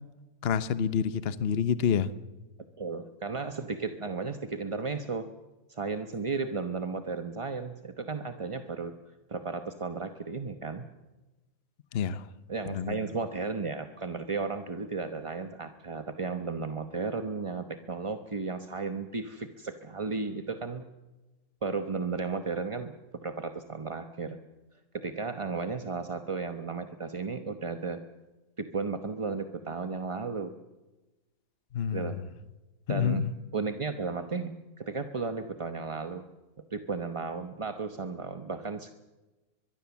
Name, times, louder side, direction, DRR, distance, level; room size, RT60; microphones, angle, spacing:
voice 1, 0.4-2.1 11.9-12.2 12.7-13.0 31.7-32.1 32.9-33.3, left 8 dB, 45° left, 14 dB, 1.0 m, -28 dB
voice 2, 2.8-5.3 5.7-8.9 9.3-10.9 12.5-20.8 21.6-22.9 23.2-24.4 24.9-28.0 28.6-30.6 31.9-32.1 32.9-33.2 33.5-34.5 34.8-36.2 36.7-38.9, right 4 dB, 25° right, 7 dB, 0.8 m, -34 dB
23.0 x 22.0 x 7.2 m, 1.1 s
omnidirectional pair, 1.6 m